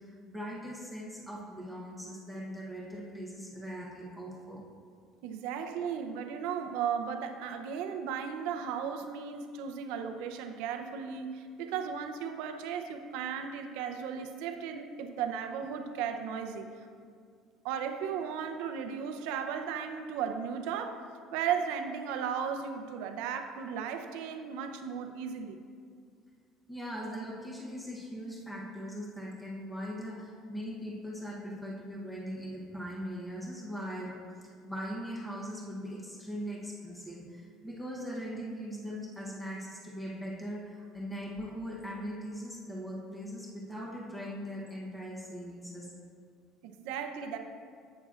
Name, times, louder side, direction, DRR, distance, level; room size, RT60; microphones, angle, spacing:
voice 1, 0.0-4.7 26.7-34.2 34.6-45.9, equal, 5° left, -4 dB, 0.9 m, -40 dB
voice 2, 5.2-16.7 17.6-21.0 21.3-25.6 46.6-47.4, right 7 dB, 85° right, 6 dB, 0.6 m, -35 dB
11.5 x 8.3 x 2.5 m, 2.1 s
cardioid pair, 175°, 0 cm